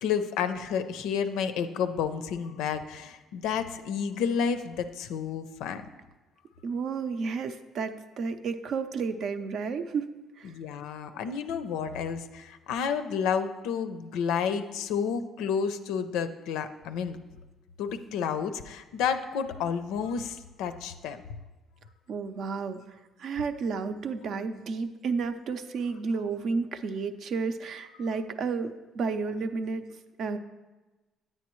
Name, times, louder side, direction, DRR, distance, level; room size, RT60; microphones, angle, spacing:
voice 1, 0.0-5.8 10.4-17.2 17.8-21.2, left 7 dB, 85° left, 9 dB, 0.5 m, -30 dB
voice 2, 6.6-10.5 22.1-29.9 30.2-30.4, right 5 dB, 60° right, 9 dB, 0.5 m, -32 dB
9.8 x 8.5 x 3.0 m, 1.2 s
cardioid pair, 115°, 0 cm